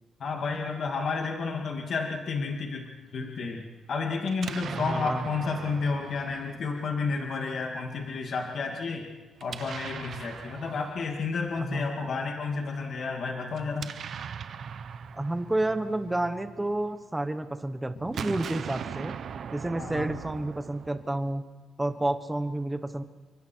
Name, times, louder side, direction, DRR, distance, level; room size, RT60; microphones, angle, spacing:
voice 1, 0.2-9.1 9.4-13.9 19.8-20.1, left 4 dB, 45° left, 2 dB, 2.4 m, -31 dB
Explosion, 4.2-7.3 9.4-11.6 13.5-16.9 18.0-21.4, right 7 dB, 50° right, 0.8 m, -40 dB
voice 2, 4.7-5.3 11.6-11.9 15.1-19.2 19.5-21.4 21.8-23.0, right 1 dB, 10° right, 9 dB, 1.2 m, -30 dB
29.0 x 23.5 x 4.7 m, 1.2 s
cardioid pair, 165°, 0 cm